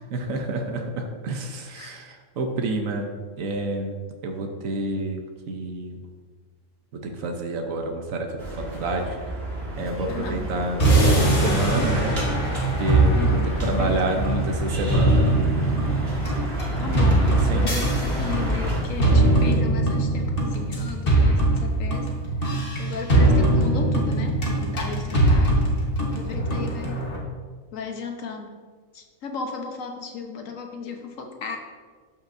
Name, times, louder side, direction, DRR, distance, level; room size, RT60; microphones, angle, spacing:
voice 1, 0.1-3.9 4.2-5.2 5.5-5.9 7.0-9.2 9.8-10.8 11.0-12.2 12.8-15.3 16.8-17.7, right 2 dB, 80° right, 3 dB, 1.3 m, -29 dB
sound 1, 8.4-18.8, right 1 dB, 50° right, 1.9 m, -30 dB
sound 2, 9.8-19.6, right 1 dB, 15° right, 0.5 m, -37 dB
voice 2, 10.1-10.6 13.1-14.3 16.8-22.1 22.8-25.6 26.0-27.0 27.7-28.6 28.9-31.6, left 5 dB, 75° left, 3 dB, 1.4 m, -35 dB
sound 3, 10.8-27.2, right 2 dB, 45° left, 1.5 m, -22 dB
13.0 x 5.8 x 2.6 m, 1.6 s
omnidirectional pair, 1.4 m